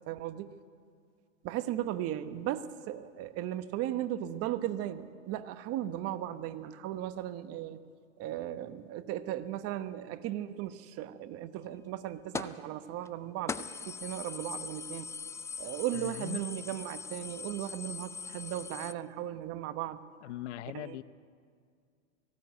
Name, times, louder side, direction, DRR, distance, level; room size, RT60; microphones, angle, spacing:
voice 1, 0.1-0.5 1.4-7.8 8.2-15.1 15.6-20.0 20.7-21.0, right 12 dB, 40° right, 12 dB, 1.2 m, -36 dB
sound 1, 12.3-12.6 13.0-13.1 13.5-18.9, left 5 dB, 10° left, 0.4 m, -41 dB
voice 2, 15.9-16.4 20.2-21.0, left 14 dB, 65° left, 16 dB, 0.9 m, -40 dB
19.0 x 16.0 x 9.5 m, 2.1 s
hypercardioid pair, 120°, 38 cm